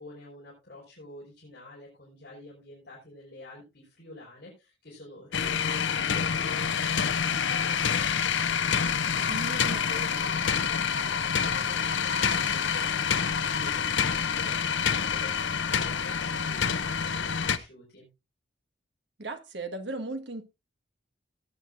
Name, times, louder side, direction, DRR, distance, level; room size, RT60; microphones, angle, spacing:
voice 1, 0.0-9.5 9.9-18.1, left 1 dB, 50° left, -6 dB, 5.0 m, -49 dB
sound 1, 5.3-17.6, left 7 dB, 70° left, 0.7 m, -27 dB
voice 2, 9.3-9.8 19.2-20.4, right 2 dB, 60° right, 7 dB, 1.6 m, -36 dB
18.5 x 8.8 x 2.6 m, 0.26 s
head